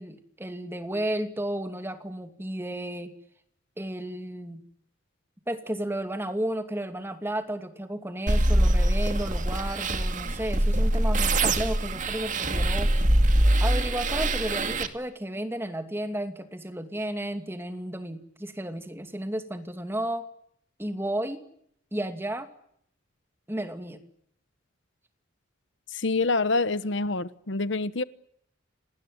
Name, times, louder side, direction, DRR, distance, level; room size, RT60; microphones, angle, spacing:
voice 1, 0.0-3.1 3.8-4.7 5.5-12.9 13.6-20.2 20.8-21.4 21.9-22.5 23.5-24.0, right 1 dB, 10° right, 8 dB, 2.5 m, -33 dB
sound 1, 8.3-14.9, right 1 dB, 40° right, 2.3 m, -23 dB
voice 2, 25.9-28.0, left 3 dB, 70° left, 15 dB, 1.1 m, -26 dB
28.5 x 20.0 x 9.4 m, 0.71 s
head